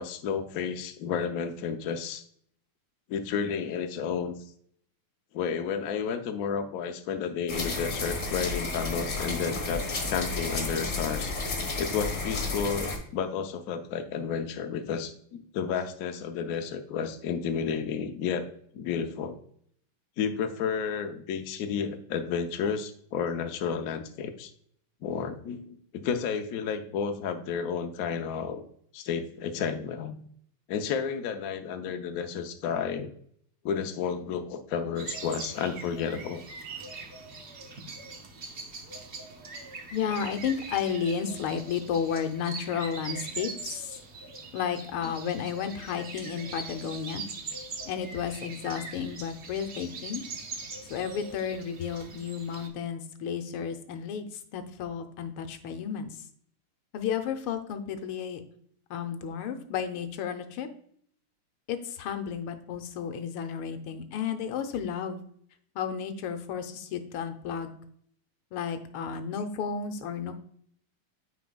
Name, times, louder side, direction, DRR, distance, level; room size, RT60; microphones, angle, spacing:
voice 1, 0.0-2.2 3.1-4.4 5.3-11.3 11.8-18.5 18.7-19.4 20.2-24.5 25.0-28.6 28.9-30.2 30.7-33.1 33.6-36.4, left 6 dB, 65° left, 6 dB, 0.9 m, -31 dB
sound 1, 7.5-13.0, left 3 dB, 40° left, 1.6 m, -32 dB
sound 2, 35.0-52.7, right 4 dB, 50° right, 0.8 m, -42 dB
voice 2, 39.9-44.0 44.5-47.2 47.9-50.2 50.9-56.1 56.9-58.4 58.9-60.7 61.7-65.2 65.8-67.7 68.5-70.3, left 7 dB, 85° left, 7 dB, 1.6 m, -32 dB
9.4 x 4.8 x 2.3 m, 0.64 s
omnidirectional pair, 2.3 m